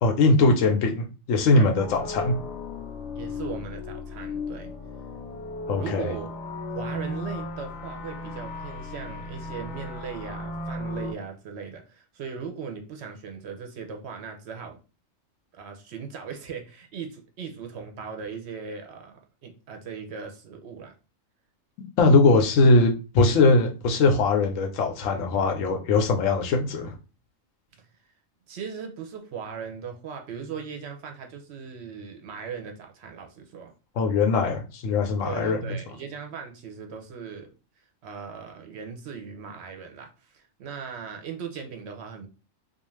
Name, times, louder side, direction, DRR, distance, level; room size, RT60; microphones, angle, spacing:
voice 1, 0.0-2.3 5.7-6.1 22.0-26.9 34.0-35.6, left 3 dB, 90° left, 5 dB, 1.0 m, -21 dB
sound 1, 1.8-11.1, left 2 dB, 70° left, 0.8 m, -35 dB
voice 2, 3.1-4.7 5.8-6.4 6.7-14.8 15.5-20.9 27.8-27.9 28.5-33.7 35.2-37.5 38.0-42.3, right 6 dB, 65° right, 4 dB, 0.8 m, -38 dB
2.4 x 2.3 x 3.1 m, 0.33 s
omnidirectional pair, 1.3 m